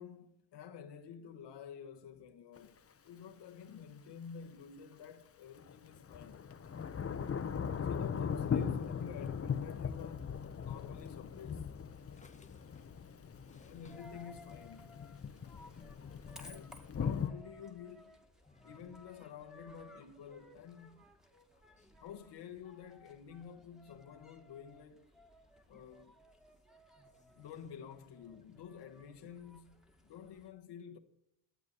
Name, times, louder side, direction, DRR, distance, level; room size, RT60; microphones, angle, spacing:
voice 1, 0.0-6.5 7.8-10.4 10.6-11.7 13.6-15.0 16.4-18.2 18.6-21.1 22.0-25.1 25.7-26.1 27.4-31.0, left 8 dB, 70° left, 1.3 m, -50 dB
Thunder / Rain, 2.6-2.7 5.6-17.3, left 7 dB, 30° left, 0.9 m, -39 dB
voice 2, 12.1-13.8 15.3-16.5 18.5-18.7, left 3 dB, 15° left, 1.6 m, -62 dB
Coin (dropping), 13.8-30.5, left 1 dB, ahead, 2.1 m, -59 dB
12.5 x 8.3 x 6.9 m
cardioid pair, 90°, 43 cm